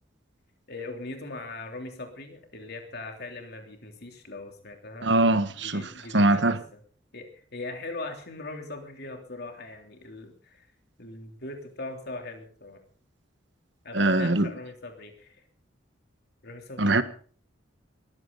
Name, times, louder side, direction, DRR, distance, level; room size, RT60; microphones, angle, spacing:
voice 1, 0.7-5.1 5.6-6.5 7.1-10.7 11.0-12.8 13.8-15.4 16.4-17.0, left 2 dB, 55° left, 3.3 m, -40 dB
voice 2, 5.0-6.6 13.9-14.5 16.8-17.0, right 2 dB, 65° right, 1.5 m, -22 dB
21.0 x 15.0 x 4.0 m
head